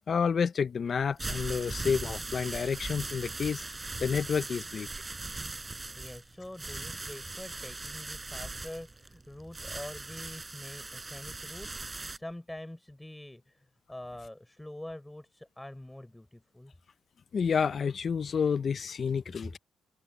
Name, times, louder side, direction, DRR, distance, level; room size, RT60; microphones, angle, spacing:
voice 1, 0.1-3.6 4.0-4.9 17.3-19.6, left 6 dB, 45° left, 0.7 m, -29 dB
sound 1, 1.0-12.2, right 3 dB, 20° right, 7.6 m, -40 dB
voice 2, 6.0-16.7, left 1 dB, 10° left, 6.8 m, -45 dB
cardioid pair, 90°, 0 cm